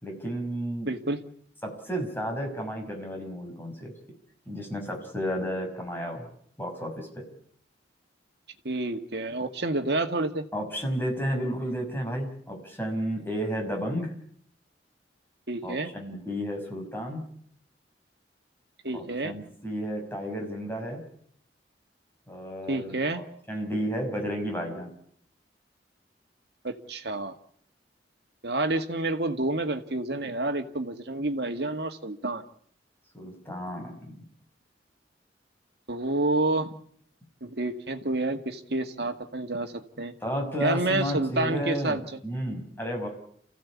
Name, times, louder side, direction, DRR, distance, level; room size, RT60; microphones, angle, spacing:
voice 1, 0.0-0.9 1.6-3.9 4.5-6.3 6.6-7.2 10.5-14.1 15.6-17.2 18.9-21.0 22.3-24.9 33.1-34.2 40.2-42.0 42.2-43.1, equal, 10° left, 1 dB, 5.7 m, -32 dB
voice 2, 0.9-1.2 8.6-10.5 15.5-15.9 18.8-19.3 22.7-23.2 26.6-27.3 28.4-32.4 35.9-36.7 37.4-40.1 40.6-42.0, right 2 dB, 60° right, 6 dB, 1.9 m, -29 dB
28.5 x 16.0 x 8.5 m, 0.66 s
head